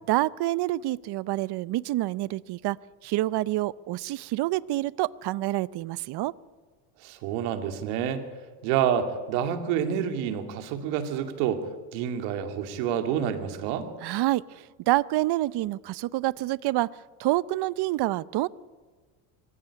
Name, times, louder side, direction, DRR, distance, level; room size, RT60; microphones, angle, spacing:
voice 1, 0.1-2.8 3.0-6.3 14.0-16.9 17.2-18.5, right 17 dB, 55° right, 20 dB, 0.7 m, -27 dB
voice 2, 7.0-8.2 8.6-11.7 11.9-13.9, right 9 dB, 80° right, 7 dB, 2.7 m, -28 dB
24.0 x 15.5 x 9.9 m, 1.4 s
supercardioid pair, 85°, 48 cm